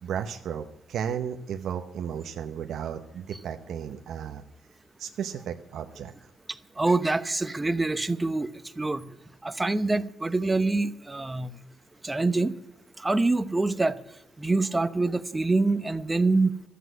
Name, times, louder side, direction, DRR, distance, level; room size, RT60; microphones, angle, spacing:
voice 1, 0.0-4.4 5.0-6.1, right 8 dB, 70° right, 5 dB, 0.8 m, -34 dB
voice 2, 6.8-8.5 8.8-9.1 9.4-11.5 12.0-12.6 13.0-14.0 14.4-16.7, right 3 dB, 15° right, 12 dB, 0.8 m, -25 dB
13.5 x 8.1 x 9.3 m, 0.80 s
cardioid pair, 90°, 0 cm